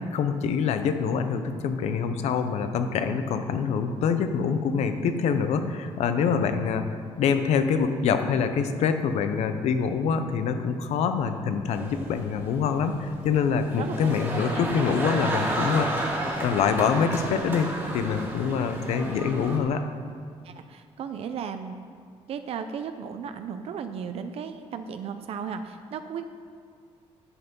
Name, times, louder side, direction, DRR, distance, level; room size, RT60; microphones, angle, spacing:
voice 1, 0.1-6.9 7.2-17.7 17.9-19.8, left 6 dB, 85° left, 8 dB, 0.8 m, -25 dB
sound 1, 11.7-19.6, right 1 dB, 20° right, 1.9 m, -32 dB
voice 2, 13.8-14.1 14.5-14.7 20.4-21.8 22.3-26.3, right 7 dB, 65° right, 8 dB, 0.5 m, -35 dB
9.8 x 8.1 x 5.4 m, 2.1 s
cardioid pair, 145°, 11 cm